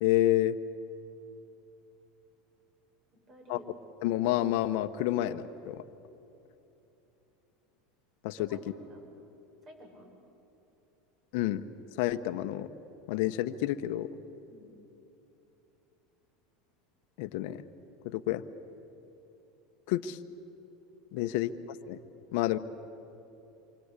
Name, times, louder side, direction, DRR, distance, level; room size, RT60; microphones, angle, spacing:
voice 1, 0.0-0.6 3.5-3.6 4.0-5.8 8.2-8.5 11.3-11.7 12.0-12.7 13.1-14.1 17.2-17.6 18.0-18.4 19.9-20.2 21.1-21.5 21.9-22.0 22.3-22.6, left 14 dB, 70° left, 10 dB, 1.1 m, -29 dB
voice 2, 3.3-3.7 8.3-9.1 9.6-10.1 14.5-14.8 21.2-21.3, equal, 40° right, 2 dB, 7.8 m, -52 dB
28.0 x 25.0 x 8.4 m, 3.0 s
supercardioid pair, 105°, 0 cm